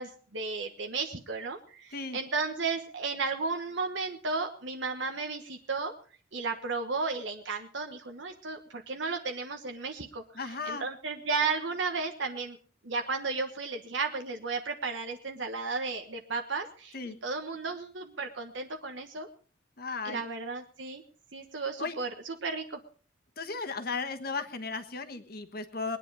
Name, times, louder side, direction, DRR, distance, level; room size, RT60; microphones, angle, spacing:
voice 1, 0.0-5.9 6.3-12.6 12.8-19.3 20.0-21.0 21.3-22.8, right 4 dB, 75° right, 4 dB, 1.4 m, -34 dB
voice 2, 10.3-10.9 16.9-17.2 19.8-20.2 21.8-21.9 23.4-26.0, left 4 dB, 55° left, 9 dB, 1.4 m, -35 dB
20.5 x 10.0 x 4.8 m, 0.40 s
head